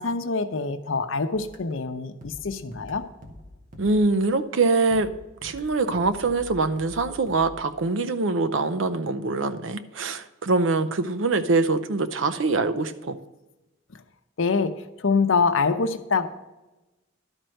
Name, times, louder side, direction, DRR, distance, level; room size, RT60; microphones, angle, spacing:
voice 1, 0.0-3.0 14.4-16.3, left 4 dB, 80° left, 9 dB, 0.7 m, -25 dB
sound 1, 1.3-4.5 4.9-7.6, equal, 45° right, 1.5 m, -45 dB
voice 2, 3.8-5.1 5.4-13.2, right 3 dB, 75° right, 11 dB, 0.6 m, -24 dB
11.5 x 4.5 x 6.3 m, 1.0 s
head